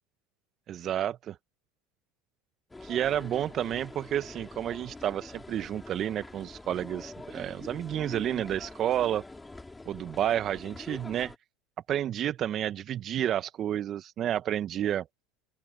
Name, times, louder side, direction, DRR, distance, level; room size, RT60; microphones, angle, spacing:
voice 1, 0.7-1.4 2.8-9.2 9.8-11.3 11.9-15.1, right 11 dB, 45° right, 1.3 m, -30 dB
sound 1, 2.7-11.4, left 2 dB, 10° left, 4.9 m, -45 dB
open air
hypercardioid pair, 85°, 0 cm